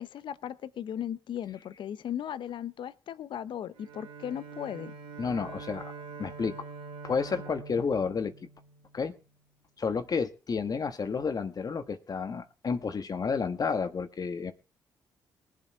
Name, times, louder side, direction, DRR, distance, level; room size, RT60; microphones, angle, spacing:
voice 1, 0.0-4.9, left 10 dB, 70° left, 15 dB, 0.8 m, -37 dB
Bowed string instrument, 3.7-9.2, right 4 dB, 90° right, 1.1 m, -45 dB
voice 2, 5.2-5.9 6.2-6.6 7.0-8.3 8.9-9.1 9.8-14.5, left 5 dB, 50° left, 9 dB, 1.3 m, -31 dB
19.5 x 7.7 x 4.6 m, 0.34 s
supercardioid pair, 60°, 9 cm